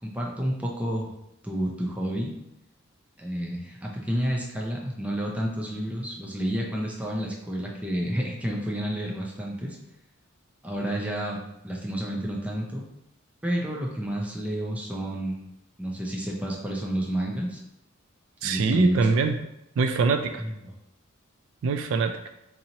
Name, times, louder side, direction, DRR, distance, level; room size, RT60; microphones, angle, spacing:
voice 1, 0.0-1.1 1.4-2.3 3.2-9.8 10.6-12.8 13.4-15.4 15.8-17.6 18.4-19.1 20.4-20.7, equal, 5° right, -2 dB, 0.5 m, -30 dB
voice 2, 18.4-19.3 19.8-20.4 21.6-22.1, right 4 dB, 65° right, 6 dB, 0.3 m, -23 dB
4.0 x 2.9 x 2.8 m, 0.84 s
head